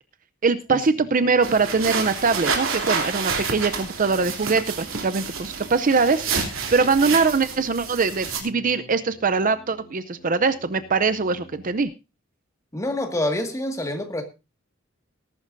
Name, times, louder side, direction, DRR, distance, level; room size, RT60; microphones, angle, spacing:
voice 1, 0.4-6.3 6.7-11.9, right 4 dB, 45° right, 0.6 m, -22 dB
sound 1, 0.5-11.8, equal, 55° left, 4.4 m, -49 dB
sound 2, 1.4-8.4, right 5 dB, 80° right, 2.9 m, -29 dB
voice 2, 12.7-14.2, left 1 dB, 15° left, 1.9 m, -27 dB
19.0 x 11.5 x 2.6 m
head